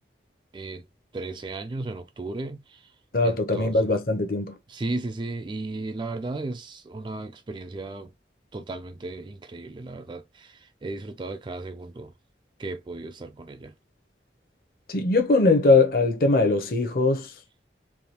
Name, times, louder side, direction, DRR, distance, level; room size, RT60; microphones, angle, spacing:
voice 1, 1.1-2.6 3.5-3.7 4.8-8.1 8.5-10.2 10.8-12.1 12.6-13.7, right 2 dB, 25° right, 0.3 m, -34 dB
voice 2, 3.1-4.5 14.9-17.3, left 3 dB, 55° left, 0.7 m, -21 dB
3.4 x 2.3 x 2.8 m
head